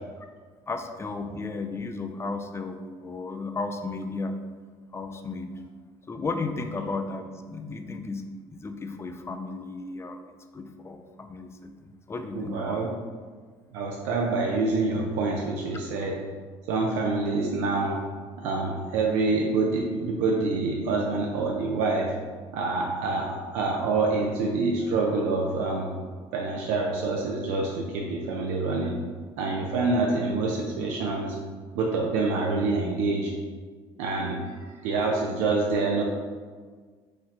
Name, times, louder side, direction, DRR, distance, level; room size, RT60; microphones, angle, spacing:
voice 1, 0.7-4.4 4.9-5.5 6.1-12.9, left 3 dB, 20° left, 6 dB, 0.4 m, -34 dB
voice 2, 12.3-12.9 13.7-16.2 16.7-18.0 18.4-22.1 22.5-25.9 26.3-29.0 29.4-31.3 31.7-33.3 34.0-34.4 34.8-36.0, right 3 dB, 80° right, -1 dB, 0.5 m, -26 dB
4.9 x 2.1 x 4.1 m, 1.5 s
supercardioid pair, 95°, 12 cm